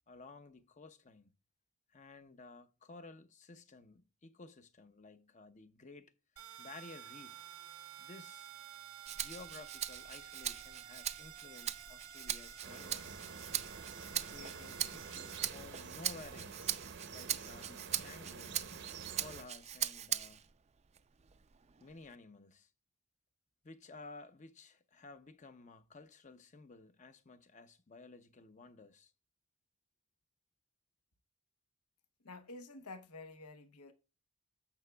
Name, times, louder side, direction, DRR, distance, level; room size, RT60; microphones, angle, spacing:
voice 1, 0.1-1.3 1.9-6.1 6.6-7.5 8.0-8.5 9.1-13.4 14.2-16.8 17.1-18.6 19.1-20.4 21.8-22.7 23.6-29.1, left 3 dB, 35° left, 0.7 m, -54 dB
sound 1, 6.4-15.4, right 9 dB, 80° right, 0.8 m, -52 dB
Rattle (instrument), 9.1-20.5 21.0-22.1, right 10 dB, 30° right, 0.4 m, -41 dB
sound 2, 12.6-19.4, right 5 dB, 55° right, 0.7 m, -49 dB
voice 2, 32.2-33.9, left 3 dB, 85° left, 1.0 m, -50 dB
14.5 x 5.9 x 2.3 m
head